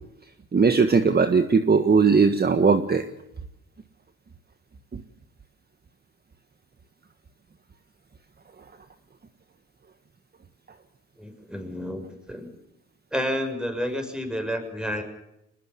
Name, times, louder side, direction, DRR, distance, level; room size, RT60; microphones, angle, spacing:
voice 1, 0.5-3.0, right 5 dB, 30° right, 8 dB, 1.6 m, -19 dB
voice 2, 11.2-12.5 13.1-15.0, equal, 5° right, 6 dB, 6.6 m, -30 dB
23.0 x 20.5 x 7.1 m, 0.84 s
cardioid pair, 90°, 30 cm